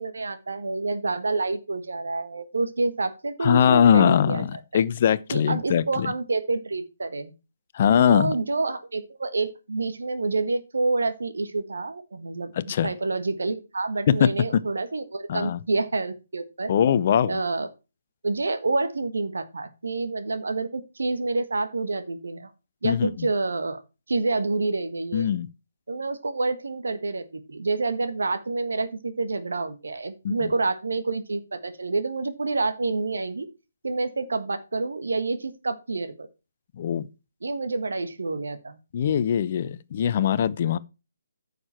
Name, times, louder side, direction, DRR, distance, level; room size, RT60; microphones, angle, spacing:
voice 1, 0.0-4.4 4.7-4.8 5.3-7.3 8.1-16.7 17.3-17.7 18.2-22.5 22.8-23.8 24.1-25.3 25.9-33.5 33.8-36.3 37.4-38.8, right 3 dB, 70° right, 1.5 m, -28 dB
voice 2, 3.4-6.1 7.7-8.4 12.6-12.9 14.1-14.6 15.3-15.6 16.7-17.4 22.8-23.3 25.1-25.5 30.2-30.5 36.8-37.1 38.9-40.8, left 8 dB, 40° left, 0.6 m, -21 dB
9.8 x 6.7 x 4.4 m
figure-of-eight pair, 145°, 0 cm